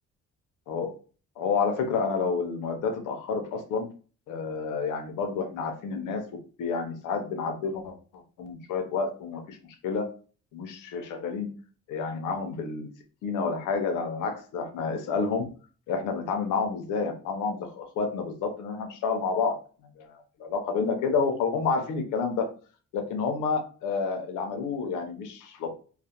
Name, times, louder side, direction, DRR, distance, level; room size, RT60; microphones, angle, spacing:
voice 1, 1.4-3.9 4.3-6.2 6.6-8.0 8.4-9.6 9.8-10.1 10.5-11.5 11.9-12.9 13.2-15.5 15.9-19.6 20.0-22.5 22.9-25.7, left 5 dB, 85° left, 5 dB, 0.6 m, -29 dB
2.4 x 2.1 x 2.7 m, 0.39 s
cardioid pair, 90°, 30 cm